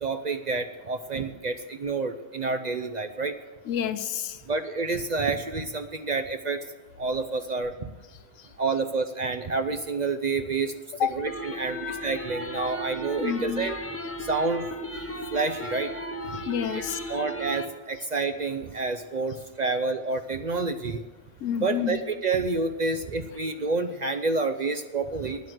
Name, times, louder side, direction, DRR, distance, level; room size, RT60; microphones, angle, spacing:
voice 1, 0.0-3.4 4.5-6.6 7.0-7.9 8.6-10.7 11.1-13.8 14.2-14.7 15.3-15.9 16.3-16.4 16.7-21.0 21.6-25.4, right 3 dB, 50° right, 8 dB, 0.6 m, -29 dB
voice 2, 3.7-4.4 11.0-11.1 13.2-13.7 16.4-17.0 21.4-22.0, left 9 dB, 90° left, 11 dB, 1.1 m, -28 dB
sound 1, 11.3-17.7, equal, 15° left, 0.8 m, -35 dB
12.5 x 9.5 x 7.7 m, 1.2 s
omnidirectional pair, 1.3 m